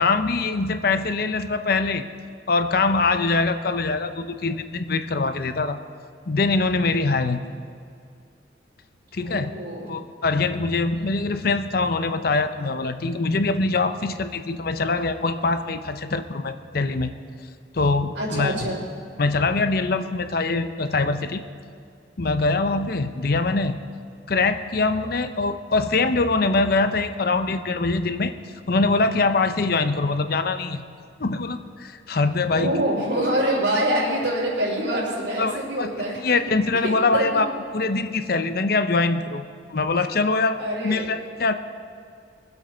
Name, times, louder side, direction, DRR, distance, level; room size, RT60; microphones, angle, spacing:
voice 1, 0.0-2.0 2.5-5.8 6.3-7.4 9.1-9.5 9.9-17.1 17.7-18.6 19.2-21.4 22.2-23.8 24.3-28.3 28.7-30.8 31.2-32.7 35.4-35.9 36.2-37.5 37.7-40.6 40.8-41.5, left 3 dB, 55° left, 9 dB, 0.7 m, -23 dB
voice 2, 9.2-9.9 18.1-18.9 32.5-36.2 36.8-37.4 40.6-41.1, right 1 dB, 80° right, -10 dB, 3.9 m, -25 dB
23.5 x 8.0 x 4.5 m, 2.3 s
head